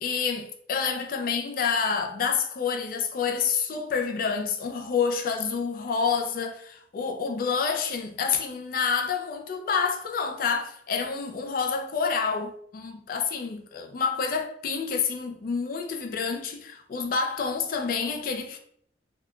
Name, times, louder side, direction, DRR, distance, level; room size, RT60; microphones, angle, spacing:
voice 1, 0.0-18.6, left 5 dB, 50° left, 0.4 m, -28 dB
3.6 x 2.2 x 2.2 m
head